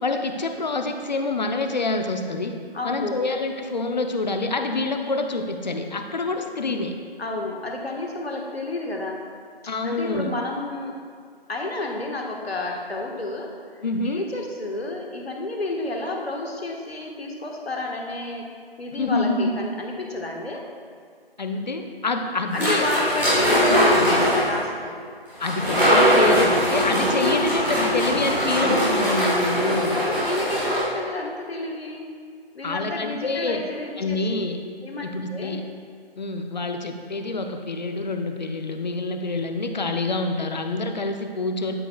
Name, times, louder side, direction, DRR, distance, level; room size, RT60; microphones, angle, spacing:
voice 1, 0.0-2.6 2.8-7.0 9.7-10.3 13.8-14.2 19.0-19.6 21.4-22.9 23.7-23.9 25.4-30.0 32.6-33.6 34.0-34.6 35.0-35.6 36.2-41.7, left 3 dB, 45° left, 6 dB, 0.6 m, -26 dB
voice 2, 2.7-3.2 7.2-9.2 9.8-11.0 11.5-18.5 18.8-20.6 22.5-25.0 27.4-27.9 29.9-32.1 32.5-34.4 34.8-35.0 35.3-35.6, left 2 dB, 80° left, 0 dB, 1.4 m, -30 dB
sound 1, 22.5-24.5 25.4-30.8, equal, 5° right, 1.2 m, -21 dB
12.5 x 4.9 x 2.3 m, 2.2 s
figure-of-eight pair, 155°, 31 cm